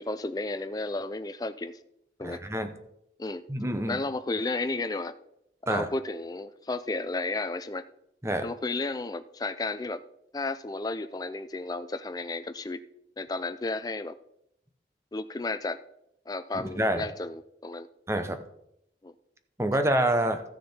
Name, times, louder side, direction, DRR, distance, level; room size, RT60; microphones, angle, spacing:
voice 1, 0.0-1.8 2.2-2.4 3.2-3.4 3.9-5.1 5.6-7.8 8.4-10.0 10.3-12.8 13.2-14.2 15.1-15.8 16.3-17.9 19.0-19.1, left 2 dB, 20° left, 12 dB, 0.4 m, -33 dB
voice 2, 2.2-2.7 3.5-4.0 5.7-5.9 8.2-8.5 16.5-17.1 18.1-18.4 19.6-20.4, right 1 dB, 15° right, 8 dB, 0.7 m, -27 dB
13.5 x 6.5 x 4.3 m, 0.77 s
head